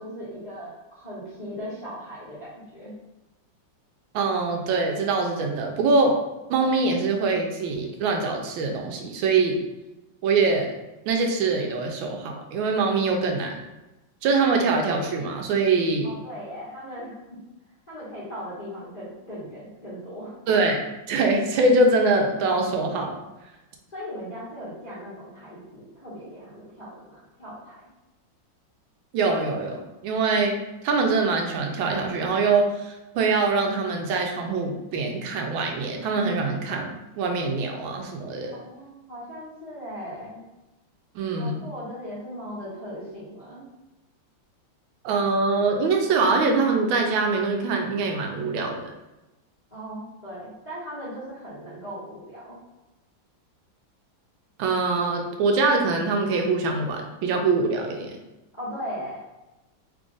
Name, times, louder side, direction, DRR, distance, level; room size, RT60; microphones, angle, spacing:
voice 1, 0.0-2.9 16.0-17.1 17.9-20.3 23.9-27.7 38.5-40.4 41.3-43.6 49.7-52.5 58.6-59.2, equal, 30° left, -11 dB, 0.8 m, -38 dB
voice 2, 4.1-6.2 6.5-9.6 10.2-10.7 11.1-13.5 14.2-16.1 20.5-20.8 21.1-23.2 29.1-30.6 30.8-38.6 41.1-41.6 45.0-48.9 54.6-58.1, right 3 dB, 85° right, 2 dB, 1.4 m, -23 dB
3.4 x 2.4 x 3.8 m, 1.0 s
omnidirectional pair, 2.1 m